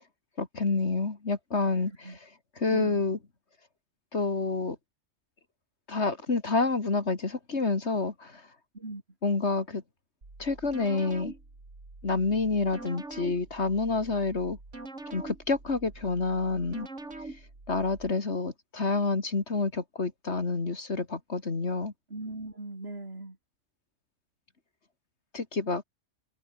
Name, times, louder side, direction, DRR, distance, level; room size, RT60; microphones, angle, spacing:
voice 1, 0.4-2.1 2.6-3.2 4.1-4.8 5.9-8.4 9.2-9.8 10.4-11.3 12.0-14.6 15.1-16.9 17.7-21.9 25.3-25.8, left 3 dB, 65° left, 2.7 m, -28 dB
voice 2, 2.7-3.1 8.7-9.0 22.1-23.4, right 2 dB, 55° right, 4.5 m, -39 dB
sound 1, 10.2-18.1, right 2 dB, 80° right, 4.7 m, -44 dB
omnidirectional pair, 1.3 m